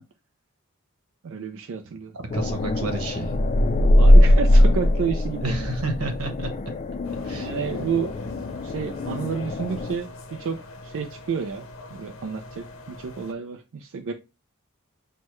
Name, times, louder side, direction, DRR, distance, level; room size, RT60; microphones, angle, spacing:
voice 1, 1.2-2.2 4.0-5.7 7.4-8.1 8.6-10.6 10.8-14.1, right 6 dB, 65° right, 0.4 m, -30 dB
voice 2, 1.8-3.3 5.4-6.5 7.2-7.5, right 2 dB, 90° right, 1.0 m, -30 dB
sound 1, 2.3-10.0, left 1 dB, 35° left, 0.3 m, -20 dB
sound 2, 7.0-13.3, left 2 dB, 70° left, 0.7 m, -43 dB
6.4 x 2.2 x 3.0 m
head